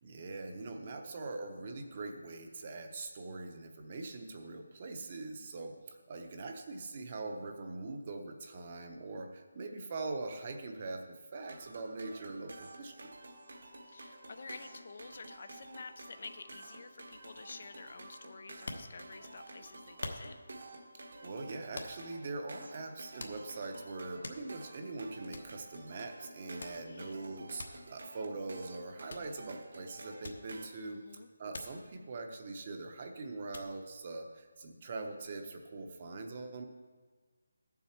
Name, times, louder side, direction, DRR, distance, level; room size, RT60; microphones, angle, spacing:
voice 1, 0.0-13.1 20.9-36.6, right 3 dB, 30° right, 5 dB, 0.8 m, -42 dB
sound 1, 11.4-30.7, right 2 dB, 60° right, 1.2 m, -51 dB
voice 2, 13.9-20.4 26.6-27.1 30.8-31.3, left 4 dB, 45° left, 10 dB, 0.4 m, -50 dB
sound 2, 18.5-19.4 20.0-20.6 21.8-22.2 22.7-22.8 23.2-23.7 24.0-24.8 25.0-25.1 25.3-25.6 26.6-26.9 27.6-27.9 29.1-29.4 30.2-30.8 31.5-31.8 32.2-33.0 33.5-33.8, left 2 dB, 65° left, 1.1 m, -45 dB
12.0 x 7.2 x 4.4 m, 1.4 s
figure-of-eight pair, 175°, 0 cm